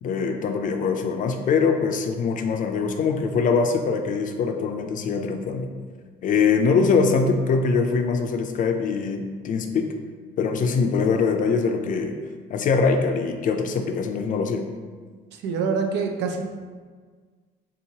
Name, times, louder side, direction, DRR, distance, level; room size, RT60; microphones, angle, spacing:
voice 1, 0.0-5.7 6.2-9.9 10.4-12.2 12.5-14.7, left 5 dB, 50° left, 5 dB, 0.4 m, -23 dB
voice 2, 15.3-16.4, right 5 dB, 75° right, 3 dB, 0.5 m, -25 dB
3.6 x 2.9 x 2.7 m, 1.5 s
cardioid pair, 95°, 18 cm